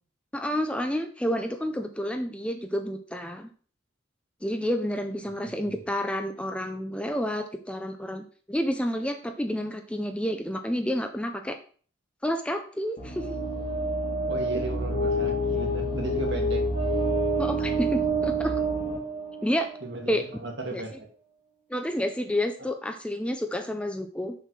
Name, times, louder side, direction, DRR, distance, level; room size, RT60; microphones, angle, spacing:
voice 1, 0.3-3.5 4.4-11.6 12.2-13.4 17.4-18.6 19.4-19.7 20.1-20.2 20.7-20.8 21.7-24.3, equal, 5° left, 6 dB, 0.5 m, -29 dB
sound 1, 13.0-19.9, right 1 dB, 35° left, 2.2 m, -28 dB
voice 2, 14.3-16.6 19.8-21.0, right 2 dB, 60° right, 2 dB, 1.8 m, -35 dB
6.7 x 4.6 x 6.1 m, 0.43 s
head